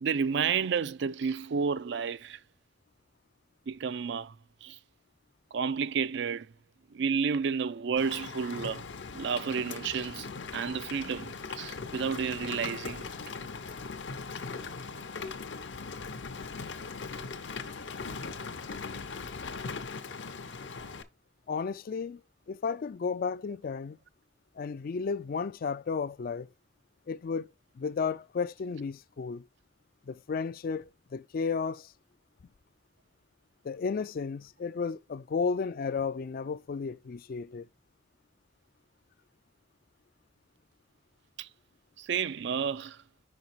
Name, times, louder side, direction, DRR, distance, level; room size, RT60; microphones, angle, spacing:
voice 1, 0.0-2.4 3.7-4.8 5.5-6.5 6.9-8.9 9.1-13.1 41.4-41.5 42.0-43.0, right 6 dB, 65° right, 0.4 m, -31 dB
Rain, 8.0-21.0, left 4 dB, 70° left, 0.7 m, -40 dB
voice 2, 21.5-22.2 22.5-24.0 24.6-26.5 27.1-27.5 27.8-29.5 30.1-31.9 33.6-37.7, left 5 dB, 50° left, 0.4 m, -33 dB
5.4 x 5.1 x 4.4 m
head